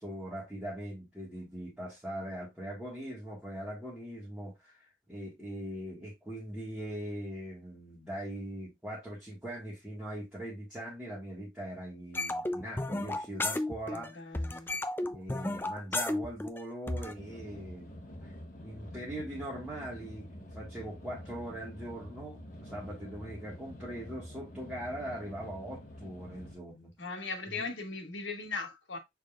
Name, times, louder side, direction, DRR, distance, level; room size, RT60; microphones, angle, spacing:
voice 1, 0.0-14.3 15.1-17.9 18.2-18.3 18.6-26.9 27.5-27.7, right 1 dB, 5° right, 1.5 m, -41 dB
sound 1, 12.1-14.1 14.3-17.1, left 2 dB, 10° left, 0.3 m, -33 dB
voice 2, 13.9-14.7 27.0-29.0, left 4 dB, 75° left, 1.4 m, -38 dB
sound 2, 17.1-26.6, equal, 45° left, 1.0 m, -47 dB
6.3 x 3.5 x 2.4 m
head